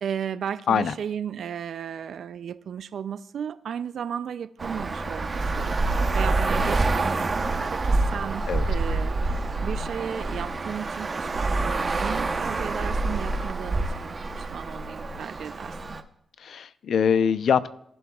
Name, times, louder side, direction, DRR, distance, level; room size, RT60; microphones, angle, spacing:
voice 1, 0.0-15.8, right 8 dB, 75° right, 0.4 m, -35 dB
Traffic noise roadway noise, 4.6-16.0, right 3 dB, 35° right, 0.9 m, -27 dB
voice 2, 16.4-17.7, left 7 dB, 70° left, 0.5 m, -23 dB
21.5 x 11.0 x 2.4 m
cardioid pair, 100°, 0 cm